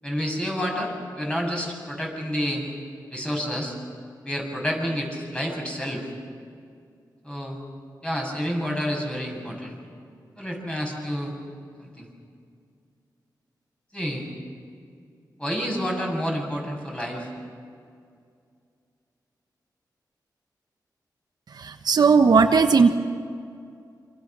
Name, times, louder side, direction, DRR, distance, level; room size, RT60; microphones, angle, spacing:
voice 1, 0.0-2.6 3.1-3.7 4.2-6.1 7.2-7.6 8.0-9.8 10.4-11.3 11.8-12.1 13.9-14.3 15.4-17.3, equal, 15° left, -1 dB, 7.6 m, -29 dB
voice 2, 21.6-23.0, right 5 dB, 65° right, 6 dB, 1.2 m, -17 dB
28.0 x 26.0 x 6.3 m, 2.3 s
wide cardioid pair, 85°, 7 cm